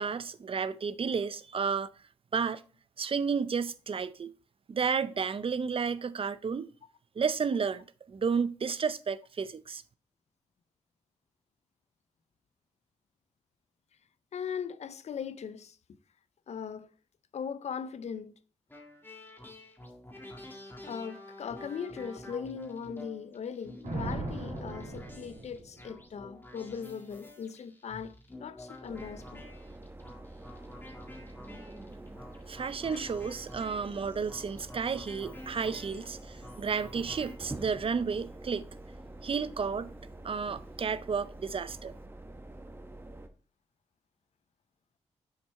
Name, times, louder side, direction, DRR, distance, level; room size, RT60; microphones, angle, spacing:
voice 1, 0.0-1.9 2.3-2.6 3.0-4.3 4.7-6.7 7.2-9.8 32.5-38.6 39.2-39.9 40.2-41.9, right 5 dB, 45° right, 0.5 m, -32 dB
voice 2, 14.3-15.8 16.5-16.9 17.3-18.3 20.8-29.4 32.9-33.0, left 7 dB, 60° left, 0.6 m, -39 dB
sound 1, 18.7-37.3, left 1 dB, 15° left, 1.8 m, -49 dB
Thunder, 23.8-26.0, right 2 dB, 75° right, 2.5 m, -38 dB
sound 2, 28.9-43.3, right 2 dB, 20° right, 1.0 m, -46 dB
6.6 x 4.4 x 4.3 m
supercardioid pair, 50°, 12 cm